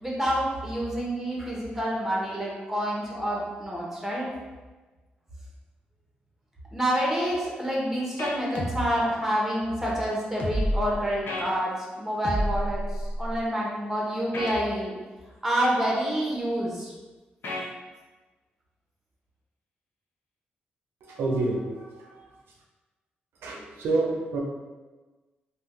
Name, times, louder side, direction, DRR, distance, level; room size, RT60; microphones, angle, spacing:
voice 1, 0.0-4.3 6.7-12.8 13.2-14.9 15.4-16.9, equal, 5° right, -5 dB, 1.1 m, -28 dB
sound 1, 8.2-8.4 11.3-11.5 14.3-14.6 17.4-17.7, left 2 dB, 70° left, 0.5 m, -32 dB
sound 2, 8.6-8.8 10.4-10.9 12.2-13.4, equal, 30° left, 0.7 m, -28 dB
voice 2, 21.0-22.2 23.4-24.4, right 2 dB, 85° right, -2 dB, 0.5 m, -28 dB
2.6 x 2.3 x 3.6 m, 1.3 s
cardioid pair, 65°, 4 cm